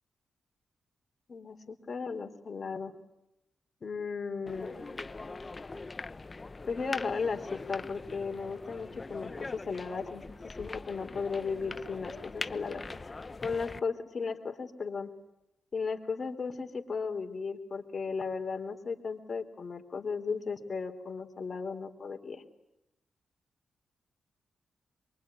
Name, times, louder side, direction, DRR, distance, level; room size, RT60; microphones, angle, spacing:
voice 1, 1.3-2.9 3.8-5.0 6.7-12.8 13.4-15.1 15.7-22.4, left 5 dB, 50° left, 4 dB, 3.4 m, -35 dB
sound 1, 4.5-13.8, left 3 dB, 35° left, 0.9 m, -42 dB
23.5 x 23.0 x 9.8 m, 0.90 s
supercardioid pair, 55°, 0 cm